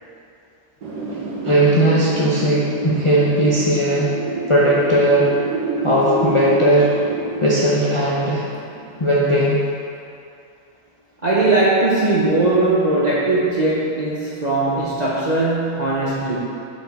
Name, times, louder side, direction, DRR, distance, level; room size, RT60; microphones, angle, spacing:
Wind, 0.8-9.5, right 3 dB, 80° right, 1.6 m, -28 dB
voice 1, 1.4-4.1 4.5-5.3 5.8-6.9 7.4-8.4 9.0-9.6, right 1 dB, 40° left, -6 dB, 0.4 m, -17 dB
voice 2, 11.2-16.4, right 2 dB, 45° right, -7 dB, 0.5 m, -19 dB
6.4 x 5.1 x 4.0 m, 2.6 s
omnidirectional pair, 1.7 m